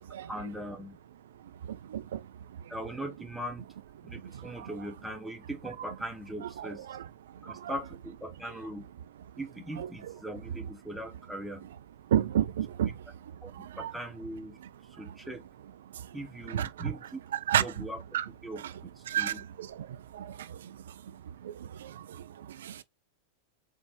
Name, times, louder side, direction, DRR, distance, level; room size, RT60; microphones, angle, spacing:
voice 1, 0.3-1.0 2.7-3.6 4.0-6.9 7.4-8.9 9.4-11.7 13.4-14.6 14.9-15.4 16.1-17.2 17.6-18.6 19.2-19.5, right 1 dB, ahead, 0.9 m, -40 dB
voice 2, 12.1-12.9 13.8-13.9 16.5-16.7 17.5-17.6 18.1-18.2 19.1-19.7 20.2-20.3 22.6-22.8, right 10 dB, 60° right, 0.4 m, -28 dB
4.7 x 3.3 x 3.1 m
figure-of-eight pair, 90°, 0 cm